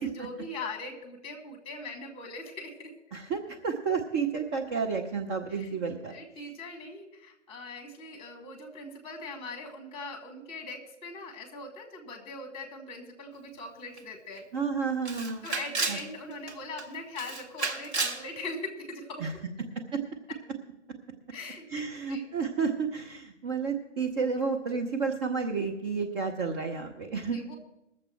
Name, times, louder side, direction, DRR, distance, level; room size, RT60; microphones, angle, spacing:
voice 1, 0.0-2.9 5.5-5.8 6.1-14.5 15.4-19.3 21.3-22.3 27.3-27.6, left 2 dB, 15° left, 4 dB, 2.1 m, -41 dB
voice 2, 3.1-6.1 14.5-15.5 15.9-16.0 19.2-19.3 19.9-20.0 21.7-27.4, right 5 dB, 20° right, 2 dB, 0.7 m, -31 dB
Camera, 14.0-14.1 14.4-14.5 15.1-16.1 16.5-16.8 17.2-18.2, right 4 dB, 65° right, 1.5 m, -32 dB
20.5 x 7.3 x 4.5 m, 0.90 s
figure-of-eight pair, 125°, 35 cm